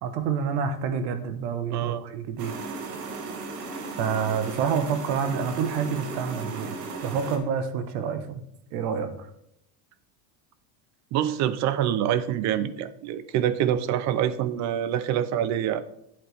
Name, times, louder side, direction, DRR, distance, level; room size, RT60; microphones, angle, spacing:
voice 1, 0.0-2.6 4.0-8.4 8.7-9.3, right 6 dB, 70° right, 9 dB, 1.4 m, -28 dB
voice 2, 1.7-2.0 11.1-15.8, right 10 dB, 35° right, 14 dB, 0.5 m, -26 dB
sound 1, 2.4-7.4, right 4 dB, 85° right, 2.1 m, -36 dB
12.5 x 7.9 x 3.4 m, 0.76 s
cardioid pair, 155°, 47 cm